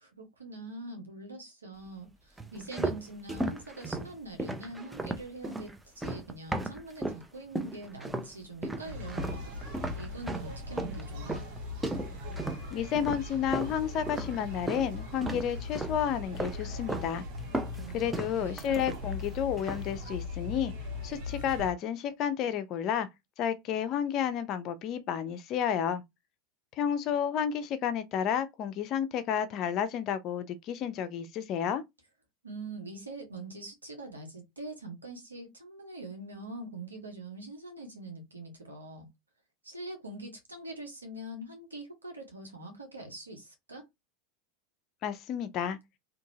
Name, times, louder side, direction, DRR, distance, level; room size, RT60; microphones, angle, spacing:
voice 1, 0.0-9.5 9.9-11.4 17.7-18.6 32.4-39.1 39.6-43.8, right 2 dB, 90° right, 1.0 m, -43 dB
sound 1, 2.4-7.2 7.5-8.3 8.6-14.9 15.2-16.0 16.3-17.1 17.4-19.3 19.6-19.9, right 2 dB, 10° right, 0.5 m, -36 dB
sound 2, 8.8-21.7, left 3 dB, 60° right, 1.2 m, -40 dB
voice 2, 12.7-17.2 17.9-20.7 21.0-23.1 23.4-26.0 26.8-31.8 45.0-45.8, left 8 dB, 45° left, 0.5 m, -31 dB
2.8 x 2.6 x 2.7 m
hypercardioid pair, 85°, 0 cm